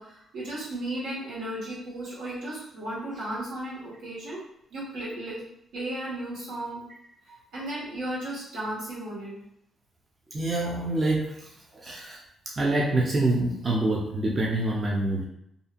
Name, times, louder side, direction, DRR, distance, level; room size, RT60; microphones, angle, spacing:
voice 1, 0.0-4.4 4.7-5.4 5.7-6.8 7.5-9.4, right 1 dB, 85° right, -7 dB, 1.3 m, -35 dB
voice 2, 10.3-12.2 12.5-15.3, right 2 dB, 35° right, -3 dB, 0.5 m, -26 dB
2.6 x 2.5 x 2.4 m, 0.76 s
cardioid pair, 90°, 0 cm